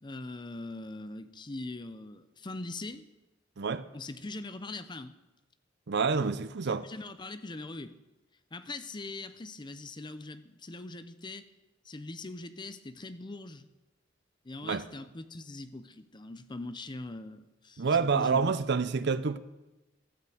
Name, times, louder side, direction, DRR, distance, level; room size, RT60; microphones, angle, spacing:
voice 1, 0.0-3.1 3.9-5.1 6.7-8.0 8.5-11.5 11.8-13.7 14.4-18.6, left 2 dB, 25° left, 0.6 m, -42 dB
voice 2, 5.9-6.8 14.6-14.9 17.8-19.4, right 5 dB, 60° right, 0.6 m, -28 dB
13.0 x 7.2 x 7.8 m
head